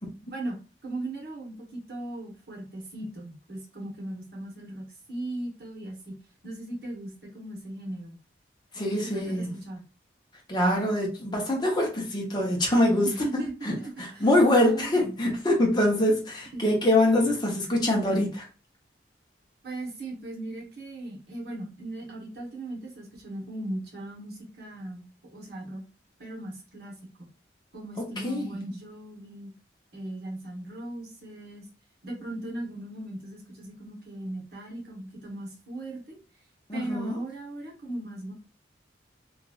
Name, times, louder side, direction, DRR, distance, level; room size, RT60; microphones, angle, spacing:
voice 1, 0.3-6.2 6.4-8.2 8.7-9.8 13.2-15.1 16.5-16.7 19.6-25.8 26.2-27.3 27.7-29.5 29.9-31.7 32.0-36.2 36.7-38.3, right 1 dB, 60° right, 1.1 m, -38 dB
voice 2, 8.7-9.5 10.5-18.5 28.2-28.6 36.7-37.2, left 1 dB, 25° left, 0.8 m, -24 dB
3.0 x 2.4 x 2.3 m
head